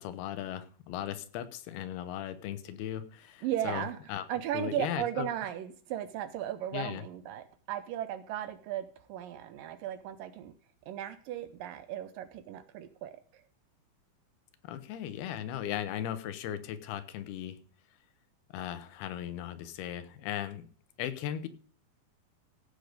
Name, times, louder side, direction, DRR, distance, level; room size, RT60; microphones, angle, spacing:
voice 1, 0.0-4.2 4.5-5.3 6.7-7.0 14.6-17.6 18.5-20.7 21.0-21.5, left 10 dB, 80° left, 12 dB, 3.0 m, -37 dB
voice 2, 3.4-10.5 10.9-13.4, right 11 dB, 75° right, 12 dB, 2.1 m, -36 dB
16.0 x 6.7 x 5.2 m, 0.44 s
omnidirectional pair, 4.5 m